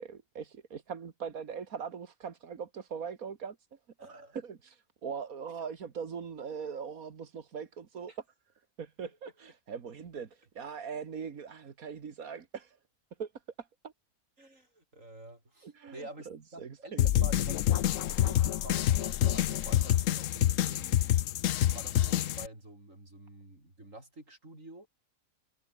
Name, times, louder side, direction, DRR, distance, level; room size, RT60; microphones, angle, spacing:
voice 1, 0.0-3.8 4.1-8.2 8.8-12.8 13.2-13.3 13.6-13.9 15.6-17.5, right 6 dB, 90° right, 2.1 m, -41 dB
voice 2, 4.0-4.4 8.1-8.2 14.4-21.0 21.6-24.9, right 1 dB, 65° right, 7.8 m, -49 dB
sound 1, 17.0-22.5, left 12 dB, 70° left, 1.0 m, -27 dB
omnidirectional pair, 1.4 m